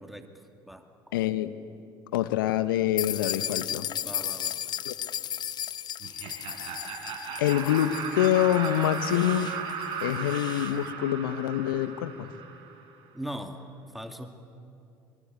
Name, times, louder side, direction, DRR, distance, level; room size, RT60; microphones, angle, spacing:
voice 1, 0.0-0.8 4.0-4.6 13.1-13.6 13.9-14.4, equal, ahead, 6 dB, 2.4 m, -40 dB
voice 2, 1.1-1.5 2.1-3.9 4.8-4.9 7.4-9.6 10.0-12.3, left 12 dB, 75° left, 13 dB, 1.1 m, -26 dB
sound 1, 3.0-10.8, left 10 dB, 40° left, 0.5 m, -35 dB
Laughter, 6.0-12.8, right 6 dB, 55° right, 4.0 m, -36 dB
25.0 x 24.0 x 8.3 m, 2.6 s
figure-of-eight pair, 60°, 12 cm